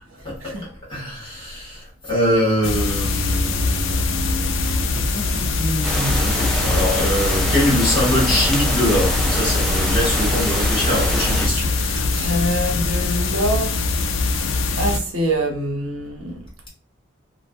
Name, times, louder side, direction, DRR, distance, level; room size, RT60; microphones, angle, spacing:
voice 1, 0.9-12.4, equal, 25° left, 1.2 m, -24 dB
sound 1, 2.6-15.0, left 3 dB, 65° left, 0.4 m, -22 dB
sound 2, 5.8-11.5, equal, 5° left, 0.4 m, -24 dB
voice 2, 12.2-13.8 14.8-16.4, equal, 85° right, 0.7 m, -24 dB
2.5 x 2.1 x 2.5 m
head